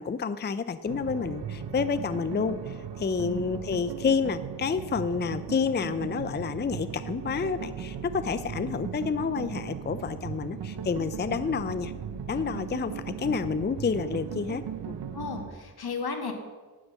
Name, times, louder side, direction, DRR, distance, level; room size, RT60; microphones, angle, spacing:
voice 1, 0.0-11.9 12.3-15.0, left 5 dB, 25° left, 13 dB, 0.5 m, -29 dB
sound 1, 0.8-15.5, right 7 dB, 80° right, 0.8 m, -37 dB
voice 2, 15.1-16.3, left 4 dB, 70° left, 4 dB, 1.5 m, -34 dB
9.5 x 6.2 x 6.4 m, 1.3 s
cardioid pair, 50°, 40 cm